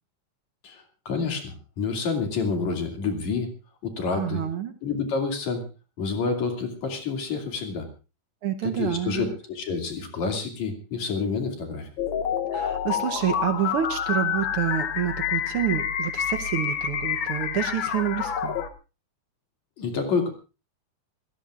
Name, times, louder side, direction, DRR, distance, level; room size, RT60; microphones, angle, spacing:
voice 1, 0.6-3.5 3.8-4.4 4.8-5.6 6.0-7.9 8.6-11.9 19.8-20.3, left 4 dB, 65° left, 3 dB, 3.8 m, -28 dB
voice 2, 4.1-4.7 8.4-9.3 12.5-18.6, right 9 dB, 70° right, 8 dB, 1.3 m, -28 dB
sound 1, 12.0-18.7, left 8 dB, 85° left, 1.0 m, -28 dB
27.5 x 16.0 x 2.5 m, 0.32 s
omnidirectional pair, 3.5 m